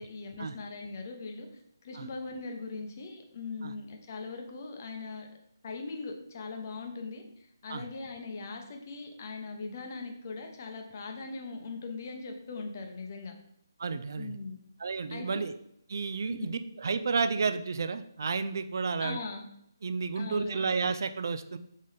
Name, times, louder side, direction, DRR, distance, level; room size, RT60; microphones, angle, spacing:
voice 1, 0.0-1.5 1.8-5.3 5.6-13.3 14.2-14.6 15.1-15.5 16.3-16.5 19.0-19.5 20.1-20.7, left 4 dB, 40° left, 3 dB, 0.7 m, -40 dB
voice 2, 13.8-14.4 14.8-15.5 15.9-19.2 19.8-21.6, right 4 dB, 55° right, 11 dB, 0.4 m, -31 dB
4.1 x 3.7 x 3.3 m, 0.72 s
figure-of-eight pair, 155°, 2 cm